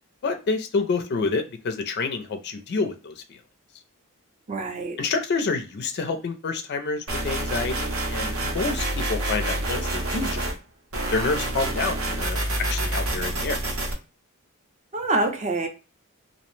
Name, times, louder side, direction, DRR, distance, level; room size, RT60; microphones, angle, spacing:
voice 1, 0.2-3.2 5.0-10.5 11.1-12.4 12.7-13.6, left 4 dB, 50° left, 0.4 m, -28 dB
voice 2, 4.5-5.0 14.9-15.7, right 2 dB, 30° right, 0.5 m, -26 dB
sound 1, 7.1-10.6 10.9-13.9, right 1 dB, 65° right, 0.7 m, -27 dB
2.5 x 2.0 x 3.0 m
head